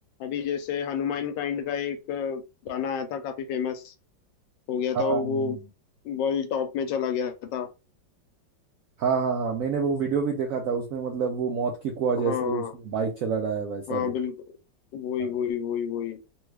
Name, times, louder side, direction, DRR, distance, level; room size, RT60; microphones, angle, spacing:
voice 1, 0.2-3.9 4.7-5.6 6.0-7.7 12.2-12.7 13.9-14.3 14.9-16.2, left 7 dB, 80° left, 8 dB, 1.3 m, -29 dB
voice 2, 4.9-5.6 9.0-14.1 15.2-15.3, right 6 dB, 75° right, 1 dB, 0.8 m, -27 dB
3.1 x 2.3 x 3.2 m, 0.29 s
omnidirectional pair, 2.0 m